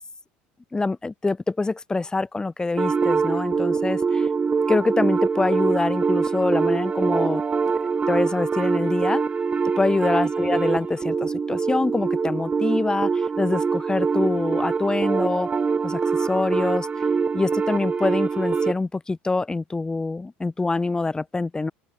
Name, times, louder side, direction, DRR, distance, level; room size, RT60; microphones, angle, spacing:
voice 1, 0.7-4.3 4.7-7.4 8.1-9.2 9.8-15.5 15.8-16.9 17.3-21.7, left 3 dB, 15° left, 7.2 m, -25 dB
sound 1, 2.8-18.8, right 5 dB, 25° right, 6.7 m, -24 dB
open air
supercardioid pair, 90°, 5 cm